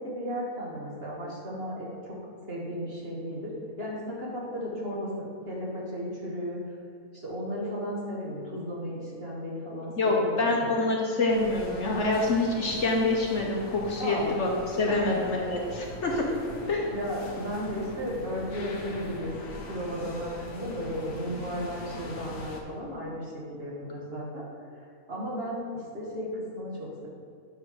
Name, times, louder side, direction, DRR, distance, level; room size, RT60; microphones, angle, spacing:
voice 1, 0.0-2.2 2.5-6.6 7.1-10.7 14.0-14.4 14.9-15.2 16.9-24.4 25.1-27.1, equal, 40° right, -4 dB, 1.6 m, -35 dB
voice 2, 10.0-16.2 16.7-16.9, left 2 dB, 55° left, -1 dB, 1.2 m, -26 dB
sound 1, 11.3-22.6, left 1 dB, 85° left, 1.4 m, -42 dB
9.0 x 3.5 x 6.5 m, 2.4 s
omnidirectional pair, 1.6 m